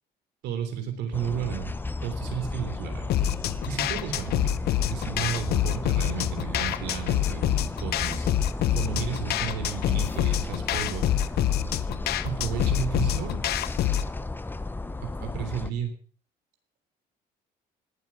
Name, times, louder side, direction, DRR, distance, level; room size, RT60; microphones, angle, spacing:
voice 1, 0.4-1.7 2.0-3.1 3.7-4.6 4.9-8.3 8.7-11.1 12.2-13.4 15.0-15.9, right 8 dB, 85° right, 7 dB, 3.4 m, -33 dB
sound 1, 1.1-15.7, left 2 dB, 10° left, 0.7 m, -34 dB
sound 2, 3.1-14.1, left 12 dB, 70° left, 0.9 m, -27 dB
19.0 x 7.9 x 6.0 m, 0.43 s
cardioid pair, 110°, 17 cm